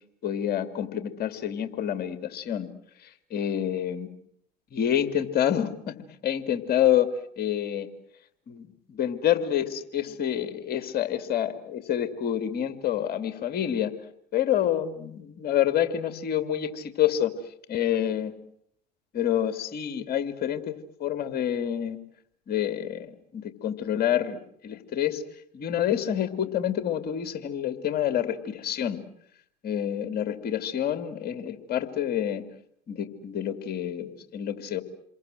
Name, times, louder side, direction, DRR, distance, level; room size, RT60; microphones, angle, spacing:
voice 1, 0.2-2.7 3.0-4.1 4.7-6.0 6.2-7.1 7.4-7.9 8.5-13.9 14.3-17.4 17.7-18.3 19.1-22.0 22.5-25.2 25.5-29.0 29.6-32.4 32.9-34.8, left 10 dB, 50° left, 10 dB, 2.7 m, -28 dB
28.0 x 23.0 x 7.8 m, 0.69 s
hypercardioid pair, 75°, 21 cm